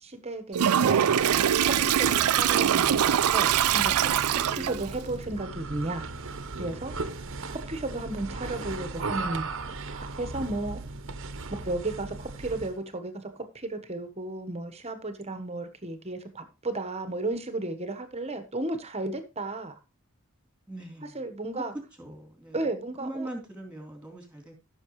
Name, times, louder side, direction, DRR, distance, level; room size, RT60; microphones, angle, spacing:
voice 1, 0.0-1.0 1.6-6.0 6.6-6.9 7.5-9.4 9.9-10.8 11.5-13.3 13.5-19.7 21.1-21.7 22.5-23.3, right 2 dB, 30° right, 1.3 m, -34 dB
Toilet flush, 0.5-4.9, right 9 dB, 85° right, 0.4 m, -23 dB
sound 1, 1.1-12.8, right 3 dB, 60° right, 1.0 m, -37 dB
voice 2, 20.7-21.2 21.5-21.6 22.0-22.6 23.0-24.5, right 1 dB, 5° right, 3.4 m, -40 dB
15.5 x 6.6 x 3.2 m
head